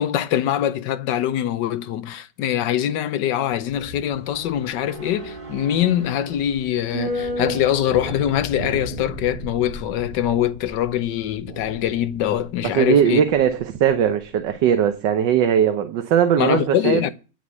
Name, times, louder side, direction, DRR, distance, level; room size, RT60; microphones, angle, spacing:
voice 1, 0.0-13.2 16.4-17.1, left 11 dB, 75° left, 1.3 m, -23 dB
sound 1, 3.5-14.0 14.3-14.4, right 1 dB, 30° right, 1.7 m, -34 dB
voice 2, 12.6-17.0, right 8 dB, 70° right, 1.5 m, -19 dB
10.0 x 6.2 x 8.2 m
omnidirectional pair, 2.0 m